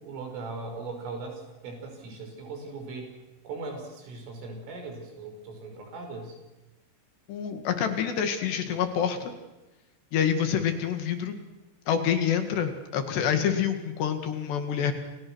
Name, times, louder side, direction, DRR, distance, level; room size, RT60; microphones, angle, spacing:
voice 1, 0.0-3.1 3.4-6.4, right 3 dB, 80° right, 3 dB, 8.3 m, -39 dB
voice 2, 7.3-9.3 10.1-11.4 11.9-14.9, left 8 dB, 65° left, 7 dB, 4.0 m, -27 dB
30.0 x 28.5 x 6.4 m, 1.0 s
omnidirectional pair, 5.6 m